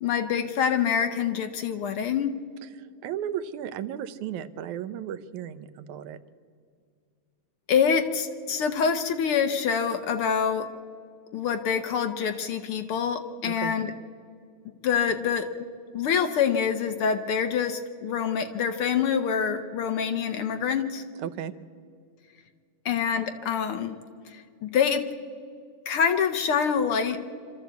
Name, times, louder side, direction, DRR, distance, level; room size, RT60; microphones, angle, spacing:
voice 1, 0.0-2.4 7.7-10.7 11.3-13.9 14.8-15.5 15.9-21.0 22.8-24.0 24.3-25.1 25.9-27.2, left 7 dB, 70° left, 7 dB, 1.4 m, -26 dB
voice 2, 2.6-6.2 13.5-13.8 21.2-21.5, right 9 dB, 85° right, 11 dB, 2.2 m, -35 dB
26.5 x 13.0 x 8.1 m, 2.2 s
omnidirectional pair, 3.4 m